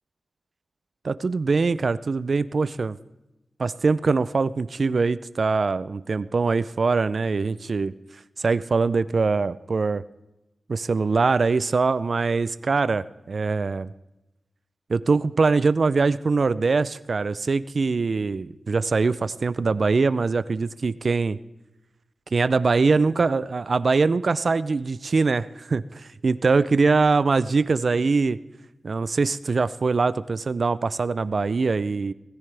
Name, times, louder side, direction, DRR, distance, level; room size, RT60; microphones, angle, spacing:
voice 1, 1.0-3.0 3.6-7.9 8.4-10.0 10.7-13.9 14.9-21.4 22.3-28.4 28.8-32.1, right 4 dB, 60° right, 16 dB, 0.4 m, -23 dB
20.0 x 14.0 x 3.4 m, 0.98 s
wide cardioid pair, 95°, 0 cm